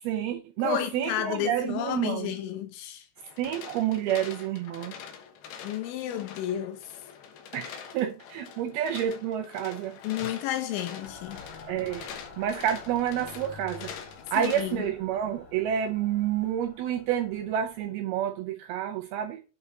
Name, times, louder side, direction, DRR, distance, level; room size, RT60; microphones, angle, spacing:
voice 1, 0.0-2.3 3.4-4.9 7.5-10.0 11.7-12.1 12.4-13.9 14.3-19.4, right 10 dB, 80° right, 2.2 m, -29 dB
voice 2, 0.6-3.1 5.6-7.0 10.0-11.4 14.4-14.8, left 11 dB, 85° left, 3.2 m, -32 dB
sound 1, 3.2-14.8, left 7 dB, 70° left, 2.9 m, -44 dB
Mechanical fan, 11.0-17.8, left 5 dB, 50° left, 2.6 m, -49 dB
8.6 x 4.2 x 3.9 m
omnidirectional pair, 5.2 m